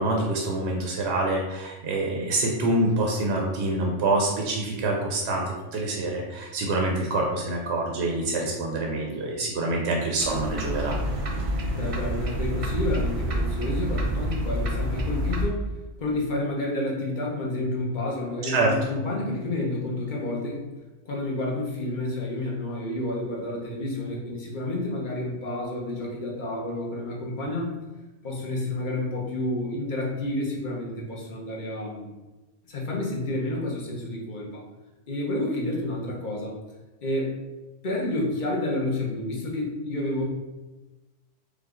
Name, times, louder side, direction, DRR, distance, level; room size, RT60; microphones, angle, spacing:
voice 1, 0.0-11.0 18.4-18.7, right 2 dB, 65° right, 0 dB, 0.9 m, -26 dB
sound 1, 10.2-15.5, equal, 45° right, 0.5 m, -28 dB
voice 2, 11.7-15.7 16.0-20.6 21.0-27.8 28.2-32.1 32.6-34.6 35.1-36.5 37.0-37.3 37.8-40.2, left 1 dB, 45° left, -2 dB, 1.0 m, -30 dB
5.0 x 2.4 x 3.7 m, 1.1 s
omnidirectional pair, 1.2 m